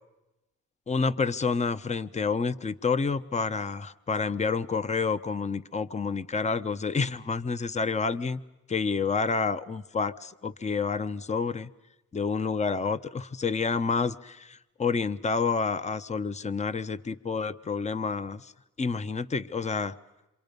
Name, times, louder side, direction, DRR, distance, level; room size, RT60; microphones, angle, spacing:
voice 1, 0.9-8.4 8.7-11.7 12.1-18.5 18.8-20.0, left 5 dB, 25° left, 0.9 m, -29 dB
27.5 x 25.5 x 5.3 m
cardioid pair, 90°, 30 cm